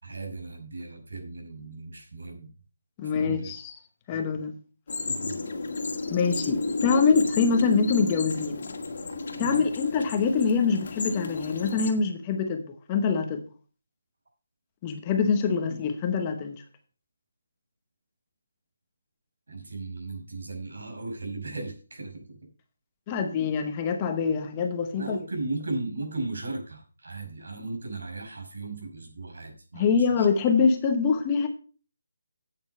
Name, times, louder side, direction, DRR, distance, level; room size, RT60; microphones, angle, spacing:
voice 1, 0.0-2.5 3.1-3.5 5.0-5.4 5.7-5.8 9.3-9.6 19.5-22.2 24.9-30.3, right 2 dB, 75° right, 3 dB, 5.1 m, -36 dB
voice 2, 3.0-3.7 4.1-4.5 6.1-8.7 9.4-13.4 14.8-16.6 23.1-25.2 29.7-31.5, left 5 dB, 15° left, 5 dB, 0.9 m, -25 dB
sound 1, 4.9-11.9, left 3 dB, 45° left, 1.8 m, -32 dB
8.7 x 8.0 x 5.4 m, 0.38 s
hypercardioid pair, 175°, 0 cm